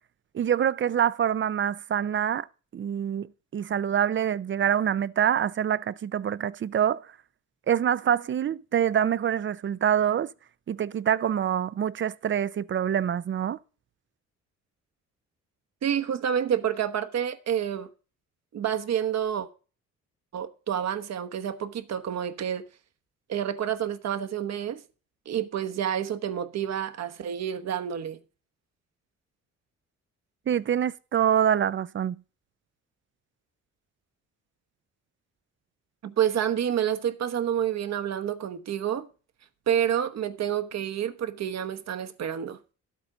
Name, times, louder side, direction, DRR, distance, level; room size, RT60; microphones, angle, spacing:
voice 1, 0.3-2.5 2.7-3.3 3.5-7.1 7.7-10.3 10.7-13.6 30.5-32.2, right 9 dB, 40° right, 0.5 m, -25 dB
voice 2, 15.8-17.9 18.5-19.5 20.3-22.6 23.3-24.8 25.3-28.2 36.0-39.1 39.7-42.6, right 9 dB, 60° right, 1.2 m, -28 dB
12.0 x 8.2 x 3.8 m
cardioid pair, 90°, 30 cm